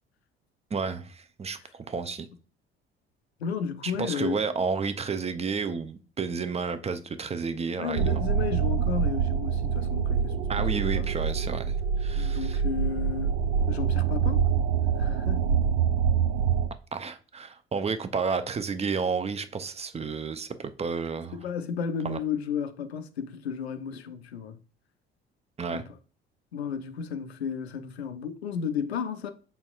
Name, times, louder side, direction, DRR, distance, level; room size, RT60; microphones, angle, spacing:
voice 1, 0.7-2.3 3.8-8.2 10.5-12.6 16.9-21.4 22.0-22.2 25.6-25.8, right 5 dB, 20° right, 0.5 m, -31 dB
voice 2, 3.4-4.4 7.8-11.1 12.1-13.4 13.7-14.4 15.0-15.6 21.3-24.6 25.7-26.0 26.5-29.3, left 7 dB, 90° left, 0.5 m, -33 dB
sound 1, 8.0-16.7, right 7 dB, 75° right, 0.5 m, -26 dB
5.4 x 4.1 x 2.3 m
figure-of-eight pair, 55°, 31 cm